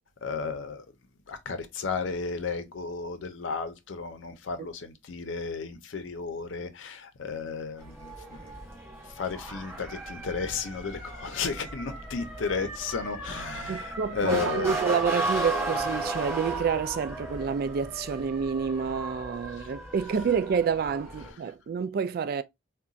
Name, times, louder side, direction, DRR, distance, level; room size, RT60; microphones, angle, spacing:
voice 1, 0.2-0.9 1.3-8.5 9.2-14.8 21.2-21.4, left 5 dB, 80° left, 0.6 m, -33 dB
Motor vehicle (road) / Siren, 7.8-21.3, right 2 dB, 15° right, 1.1 m, -35 dB
voice 2, 13.7-22.4, right 6 dB, 50° right, 0.3 m, -28 dB
3.9 x 2.2 x 2.3 m
head